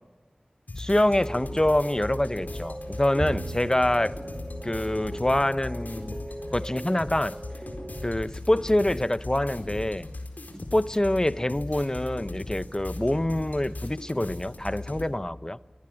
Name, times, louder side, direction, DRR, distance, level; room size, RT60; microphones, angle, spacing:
sound 1, 0.7-15.1, left 2 dB, 90° left, 4.3 m, -38 dB
voice 1, 0.8-4.2 4.6-6.1 6.5-7.4 8.0-10.1 10.7-15.6, left 1 dB, 25° left, 0.7 m, -25 dB
sound 2, 1.1-8.1, right 1 dB, 25° right, 1.1 m, -41 dB
Bowed string instrument, 3.2-9.5, right 2 dB, 45° right, 0.8 m, -42 dB
25.0 x 18.0 x 9.8 m
wide cardioid pair, 45°, 3 cm